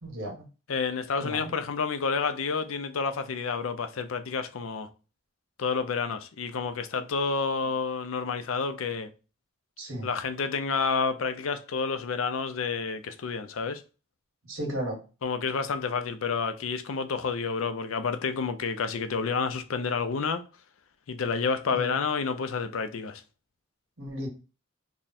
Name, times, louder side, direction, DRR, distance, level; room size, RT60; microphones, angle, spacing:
voice 1, 0.0-0.3 1.2-1.5 9.8-10.1 14.5-15.0 21.7-21.9 24.0-24.3, right 1 dB, 90° right, 1.7 m, -34 dB
voice 2, 0.7-4.9 5.6-9.1 10.0-13.8 15.2-20.4 21.1-23.2, left 5 dB, 85° left, 0.5 m, -29 dB
3.5 x 2.1 x 4.1 m
head